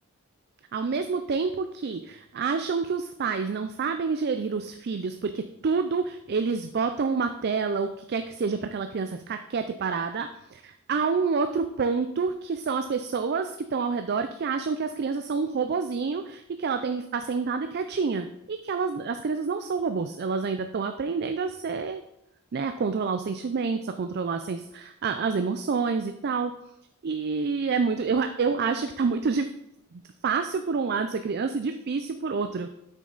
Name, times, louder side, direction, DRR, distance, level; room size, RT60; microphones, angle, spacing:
voice 1, 0.7-22.0 22.5-26.5 27.0-29.5 29.9-32.7, right 5 dB, 50° right, 8 dB, 0.4 m, -28 dB
7.9 x 6.3 x 3.9 m, 0.81 s
head